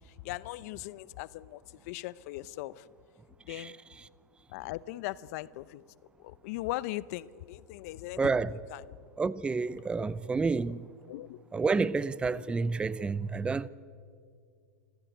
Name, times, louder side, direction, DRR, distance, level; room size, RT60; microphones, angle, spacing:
voice 1, 0.2-1.6 1.9-2.8 3.5-3.7 4.5-5.8 6.2-8.2 8.7-8.8 10.0-10.1 11.1-11.4 12.4-12.5, left 17 dB, 55° left, 0.7 m, -39 dB
voice 2, 3.5-4.1 8.2-8.6 9.2-10.9 11.5-13.7, right 4 dB, 10° right, 0.5 m, -30 dB
26.5 x 15.0 x 9.3 m
hypercardioid pair, 125°, 10 cm